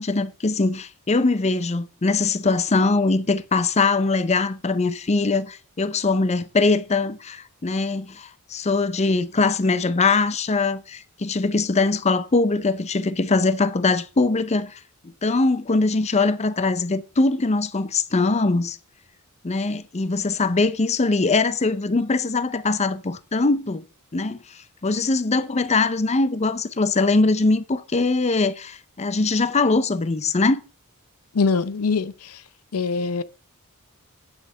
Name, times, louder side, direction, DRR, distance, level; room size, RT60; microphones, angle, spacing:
voice 1, 0.0-14.8 15.2-18.8 19.4-23.8 24.1-30.6, left 3 dB, 30° left, 0.6 m, -22 dB
voice 2, 31.3-32.4 32.7-33.2, left 4 dB, 75° left, 0.6 m, -23 dB
8.9 x 7.2 x 5.4 m
head